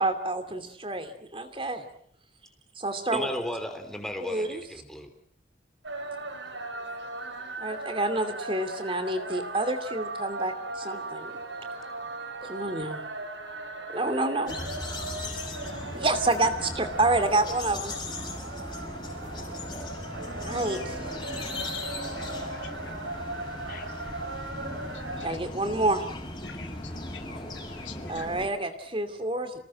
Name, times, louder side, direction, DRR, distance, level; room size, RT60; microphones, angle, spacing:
voice 1, 0.0-1.8 2.8-3.3 4.3-4.6 7.6-11.3 12.4-13.0 13.9-14.5 15.9-17.9 20.4-21.1 25.2-26.0 28.1-29.5, right 2 dB, 30° right, 9 dB, 2.6 m, -28 dB
voice 2, 3.1-5.1 15.4-15.5, equal, 5° left, 5 dB, 3.5 m, -35 dB
sound 1, 5.8-25.3, right 2 dB, 75° right, 5.5 m, -38 dB
sound 2, 14.5-28.5, left 2 dB, 20° left, 6.0 m, -38 dB
voice 3, 19.3-19.8 22.5-23.3 23.5-24.3, left 5 dB, 50° left, 6 dB, 2.5 m, -52 dB
voice 4, 26.4-28.3, left 6 dB, 75° left, 5 dB, 2.9 m, -46 dB
29.0 x 19.0 x 7.5 m, 0.64 s
head